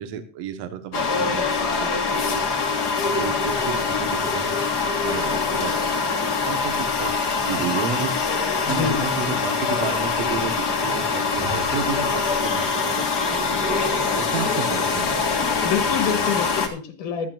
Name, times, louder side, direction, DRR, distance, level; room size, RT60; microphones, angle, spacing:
voice 1, 0.0-2.5 3.0-7.1 7.5-8.2 8.6-13.8 14.2-15.1, right 7 dB, 60° right, 7 dB, 2.3 m, -32 dB
sound 1, 0.9-16.7, left 4 dB, 35° left, 1.9 m, -24 dB
voice 2, 8.6-9.0 15.6-17.3, left 7 dB, 80° left, 8 dB, 3.0 m, -26 dB
17.0 x 11.5 x 2.5 m, 0.36 s
omnidirectional pair, 3.6 m